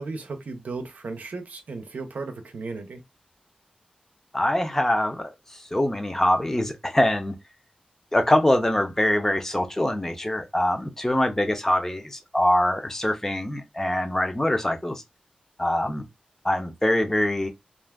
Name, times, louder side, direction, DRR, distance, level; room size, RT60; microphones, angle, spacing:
voice 1, 0.0-3.0, right 3 dB, 85° right, 0.6 m, -35 dB
voice 2, 4.3-7.4 8.1-15.0 15.6-16.0 16.4-17.5, left 1 dB, 15° left, 0.7 m, -24 dB
2.5 x 2.4 x 3.4 m
wide cardioid pair, 90°, 3 cm